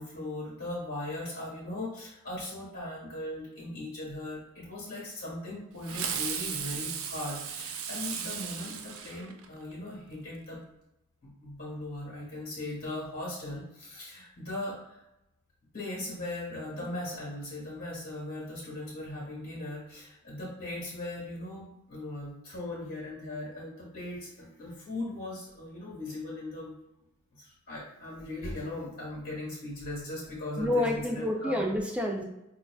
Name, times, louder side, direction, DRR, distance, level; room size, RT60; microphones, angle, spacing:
voice 1, 0.0-10.6 11.2-15.0 15.7-26.7 27.3-31.6, left 1 dB, 50° left, -7 dB, 1.3 m, -39 dB
Fireworks, 5.8-9.7, right 7 dB, 75° right, 0.4 m, -36 dB
voice 2, 30.6-32.2, left 1 dB, 5° right, 1 dB, 0.4 m, -28 dB
5.4 x 2.3 x 2.3 m, 0.90 s
head